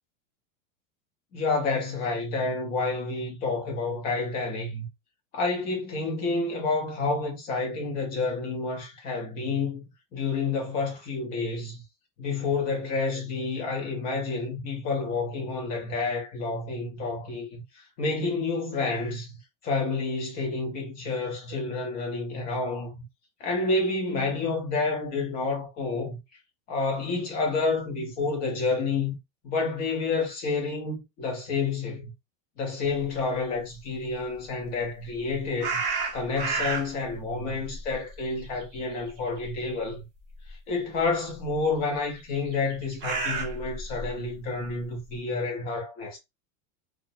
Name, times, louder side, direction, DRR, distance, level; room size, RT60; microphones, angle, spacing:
voice 1, 1.3-4.9 5.3-9.8 10.1-11.8 12.2-19.3 19.6-23.0 23.4-26.2 26.7-29.1 29.4-32.1 32.6-35.8 36.1-40.0 40.5-46.2, left 3 dB, 25° left, 0.6 m, -29 dB
sound 1, 35.6-37.1 37.5-39.2 39.4-39.7 40.5-40.6 42.3-44.1, right 4 dB, 25° right, 0.6 m, -30 dB
2.3 x 2.1 x 2.6 m
supercardioid pair, 175°, 39 cm